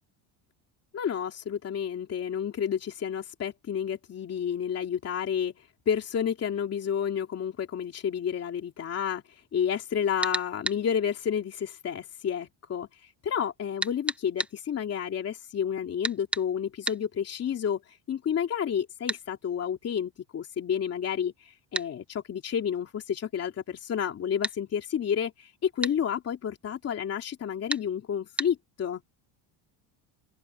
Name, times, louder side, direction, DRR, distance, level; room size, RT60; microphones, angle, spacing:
voice 1, 0.9-29.0, left 8 dB, 30° left, 2.9 m, -30 dB
sound 1, 10.2-10.8 13.8-14.5 16.0-16.5 16.9-17.0 19.1-19.2 21.7-21.9 24.4-24.6 25.8-26.0 27.7-27.9 28.4-28.5, right 1 dB, 5° right, 0.3 m, -31 dB
open air
cardioid pair, 150°, 47 cm